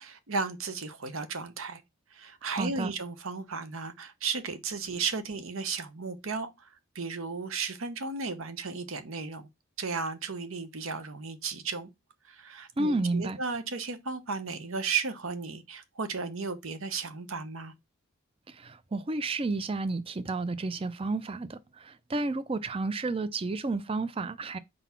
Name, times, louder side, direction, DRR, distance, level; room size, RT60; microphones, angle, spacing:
voice 1, 0.0-1.8 2.1-6.7 6.9-9.5 9.8-11.9 12.2-17.7, right 4 dB, 75° right, 0.9 m, -34 dB
voice 2, 2.5-2.9 12.8-13.4 18.5-24.6, right 3 dB, 25° right, 0.4 m, -31 dB
4.6 x 4.0 x 5.7 m
head